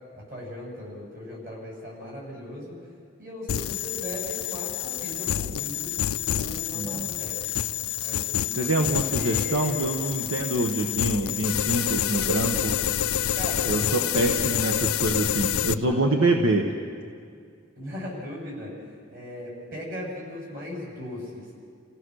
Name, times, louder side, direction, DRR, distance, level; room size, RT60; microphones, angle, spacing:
voice 1, 0.1-2.7 3.2-5.9 6.3-8.7 9.1-10.0 13.3-14.8 15.8-16.6 17.8-18.7 19.1-21.6, left 1 dB, 45° right, -3 dB, 7.7 m, -38 dB
sound 1, 3.5-15.7, left 10 dB, 85° left, 0.5 m, -28 dB
voice 2, 6.7-7.1 8.6-12.7 13.6-16.6, right 2 dB, 75° right, 2 dB, 1.3 m, -25 dB
30.0 x 16.5 x 6.5 m, 2.3 s
head